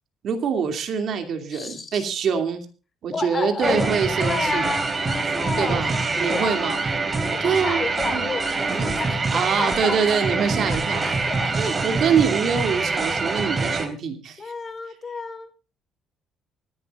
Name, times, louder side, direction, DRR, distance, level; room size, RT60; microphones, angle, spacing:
voice 1, 0.2-2.6 3.0-4.7 5.6-6.8 7.4-8.3 8.8-8.9 9.3-11.0 11.6-14.5, right 6 dB, 55° right, 5 dB, 2.7 m, -25 dB
voice 2, 1.5-2.0 3.1-3.9 4.2-6.8 7.2-11.6 14.4-15.5, left 4 dB, 30° left, 7 dB, 4.1 m, -31 dB
sound 1, 3.6-13.9, right 3 dB, 25° right, 2.8 m, -25 dB
24.5 x 11.0 x 2.5 m, 0.33 s
cardioid pair, 120°, 0 cm